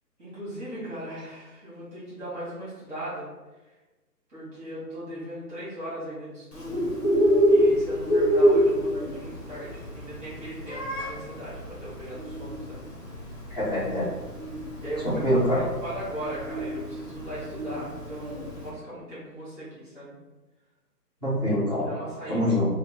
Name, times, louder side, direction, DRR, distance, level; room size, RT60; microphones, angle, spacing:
voice 1, 0.2-3.3 4.3-6.8 7.5-12.8 14.8-15.2 15.6-20.1 21.7-22.4, right 1 dB, 10° right, -10 dB, 1.2 m, -38 dB
Bird, 6.5-18.7, equal, 50° left, 1.2 m, -26 dB
voice 2, 13.5-14.1 15.0-15.6 21.2-21.9 22.3-22.7, equal, 25° left, -9 dB, 1.3 m, -24 dB
3.5 x 2.1 x 3.4 m, 1.1 s
hypercardioid pair, 170°, 50 cm